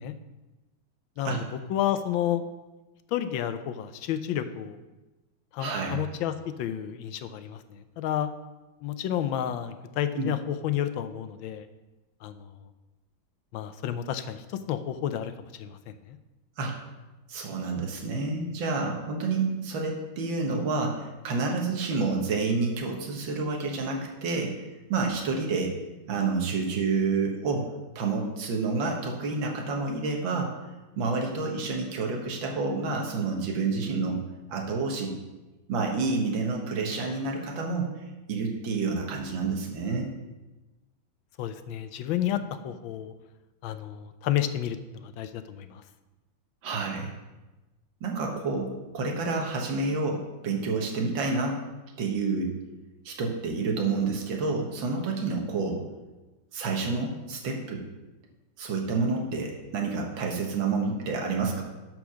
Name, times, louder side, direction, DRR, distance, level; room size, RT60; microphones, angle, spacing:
voice 1, 1.2-2.4 3.1-4.8 5.5-8.3 8.8-11.7 12.2-12.5 13.5-15.9 41.4-43.1 43.6-45.8, left 10 dB, 80° left, 11 dB, 1.4 m, -31 dB
voice 2, 5.6-6.0 10.2-10.3 16.6-16.7 17.3-24.6 24.9-25.8 26.1-30.5 31.0-34.2 34.5-35.1 35.7-37.9 38.3-40.1 46.6-47.1 48.0-51.6 52.0-52.5 53.1-55.9 56.5-57.8 58.6-61.6, right 4 dB, 75° right, 1 dB, 2.0 m, -29 dB
10.5 x 4.7 x 6.3 m, 1.1 s
omnidirectional pair, 2.1 m